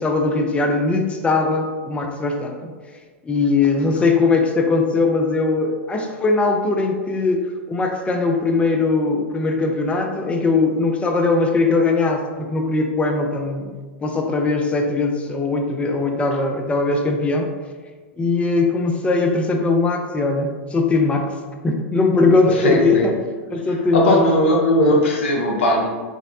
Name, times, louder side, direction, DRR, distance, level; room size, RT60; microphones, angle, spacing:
voice 1, 0.0-2.7 3.2-17.5 18.2-21.3 21.6-23.0 23.5-24.2, left 3 dB, 15° left, 3 dB, 0.4 m, -20 dB
voice 2, 22.5-23.1 23.9-25.9, left 1 dB, 70° left, 0 dB, 0.7 m, -18 dB
3.0 x 2.6 x 2.6 m, 1.4 s
hypercardioid pair, 100°, 7 cm